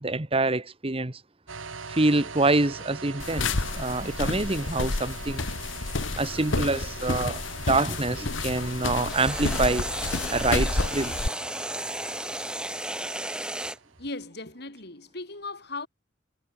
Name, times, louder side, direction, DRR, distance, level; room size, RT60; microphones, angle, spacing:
voice 1, 0.0-1.2 1.9-5.5 6.2-7.4 7.7-9.9 10.3-11.2, right 2 dB, 30° right, 1.2 m, -26 dB
sound 1, 1.5-14.1, right 4 dB, 85° right, 1.9 m, -43 dB
sound 2, 2.7-7.9 9.0-13.8, right 1 dB, 5° right, 2.2 m, -34 dB
sound 3, 3.2-11.3, left 3 dB, 75° left, 1.5 m, -30 dB
voice 2, 14.0-15.9, left 3 dB, 55° left, 3.5 m, -37 dB
head